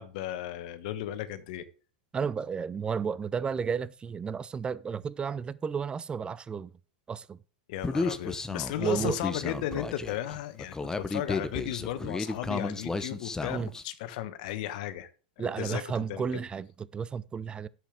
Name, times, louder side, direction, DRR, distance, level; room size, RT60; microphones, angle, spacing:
voice 1, 0.0-1.6 7.7-15.1 15.4-15.8 16.1-16.2, left 12 dB, 60° left, 1.4 m, -35 dB
voice 2, 2.1-6.7 7.1-7.4 8.8-9.2 13.5-13.7 15.4-17.7, right 6 dB, 20° right, 0.6 m, -32 dB
Human voice, 7.8-13.8, left 3 dB, 10° left, 1.0 m, -33 dB
10.5 x 7.8 x 5.0 m
hypercardioid pair, 105°, 5 cm